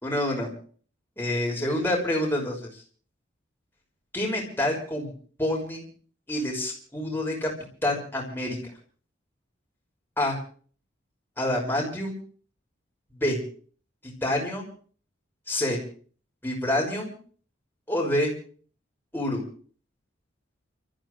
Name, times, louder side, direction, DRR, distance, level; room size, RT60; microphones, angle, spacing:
voice 1, 0.0-0.5 1.2-2.7 4.1-5.1 5.4-5.8 6.3-7.5 7.8-8.6 10.2-10.4 11.4-12.2 13.1-13.4 14.0-14.6 15.5-15.8 16.4-17.1 17.9-18.3 19.1-19.4, left 1 dB, 10° left, -1 dB, 5.9 m, -27 dB
30.0 x 14.5 x 3.2 m, 0.43 s
head